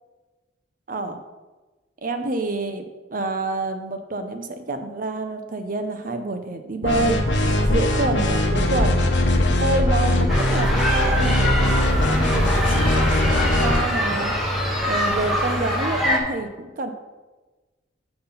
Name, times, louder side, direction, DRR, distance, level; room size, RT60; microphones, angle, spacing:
voice 1, 0.9-1.2 2.0-7.2 7.7-9.1 9.5-12.7 12.9-14.3 14.9-16.9, right 2 dB, 50° right, 7 dB, 0.7 m, -27 dB
sound 1, 6.8-13.9, left 1 dB, 70° left, 1.0 m, -20 dB
sound 2, 10.3-16.2, equal, ahead, 1.2 m, -24 dB
5.8 x 5.8 x 5.6 m, 1.2 s
head